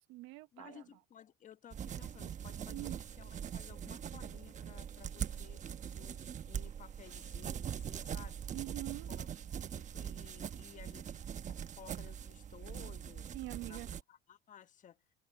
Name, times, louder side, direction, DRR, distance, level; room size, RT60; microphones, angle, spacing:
voice 1, 0.0-0.8 2.7-3.0 8.5-9.1 13.3-13.9, right 18 dB, 80° right, 1.4 m, -44 dB
voice 2, 0.5-8.4 9.1-9.3 9.7-13.3 13.6-15.0, left 9 dB, 40° left, 1.2 m, -57 dB
sound 1, 1.7-14.0, right 8 dB, 40° right, 1.1 m, -42 dB
cardioid pair, 110°, 20 cm